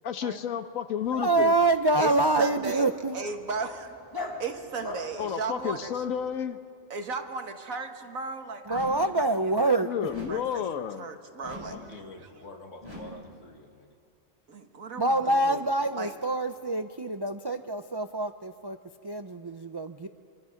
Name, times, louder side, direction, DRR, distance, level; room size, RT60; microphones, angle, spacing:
voice 1, 0.0-1.5 5.2-6.6 9.8-11.1, left 8 dB, 85° left, 10 dB, 1.3 m, -31 dB
Dog, 1.0-6.4, left 2 dB, 15° left, 1.9 m, -43 dB
voice 2, 1.1-3.2 8.7-10.1 15.0-18.8 19.0-20.1, right 2 dB, 40° right, 8 dB, 0.3 m, -26 dB
voice 3, 2.0-2.8 3.1-4.0 4.4-6.0 6.9-9.0 9.4-9.5 10.3-10.6 11.0-11.8 14.5-15.7 16.0-16.1, right 4 dB, 85° right, 5 dB, 1.9 m, -36 dB
sound 1, 8.7-9.2 10.1-10.6 11.4-11.9 12.8-13.3, left 1 dB, 20° right, 3.8 m, -43 dB
voice 4, 11.4-14.0, left 2 dB, 65° left, 3 dB, 2.3 m, -47 dB
26.0 x 24.5 x 5.8 m, 2.3 s
omnidirectional pair, 1.4 m